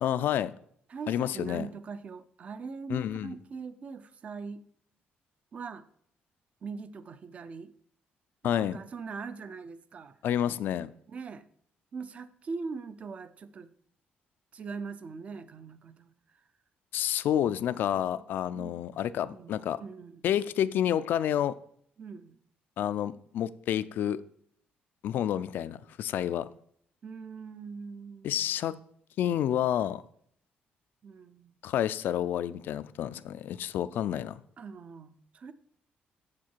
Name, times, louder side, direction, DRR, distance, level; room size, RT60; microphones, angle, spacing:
voice 1, 0.0-0.5 1.1-1.7 2.9-3.3 8.4-8.8 10.2-10.9 16.9-19.8 20.2-21.5 22.8-24.2 25.0-26.5 28.2-28.7 29.2-30.0 31.6-34.4, left 10 dB, 70° left, 15 dB, 0.4 m, -29 dB
voice 2, 0.9-4.6 5.5-5.8 6.6-7.7 8.4-10.2 11.1-11.5 11.9-13.7 14.5-16.1 17.9-18.2 18.5-19.0 19.2-20.5 22.0-22.4 27.0-28.6 31.0-31.6 34.6-35.5, right 5 dB, 40° right, 13 dB, 0.5 m, -42 dB
7.4 x 7.2 x 4.5 m, 0.65 s
cardioid pair, 140°, 3 cm